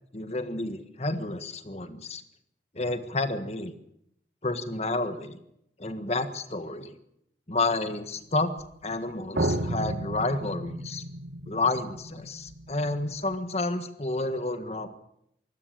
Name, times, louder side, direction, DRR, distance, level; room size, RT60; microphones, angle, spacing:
voice 1, 0.1-2.2 2.7-3.7 4.4-5.4 5.8-6.9 7.5-8.5 8.8-11.0 11.5-14.9, left 2 dB, 35° left, 10 dB, 1.5 m, -30 dB
sound 1, 8.6-8.7 9.4-13.3, right 1 dB, 70° right, 1.5 m, -33 dB
23.5 x 17.0 x 6.7 m, 0.76 s
head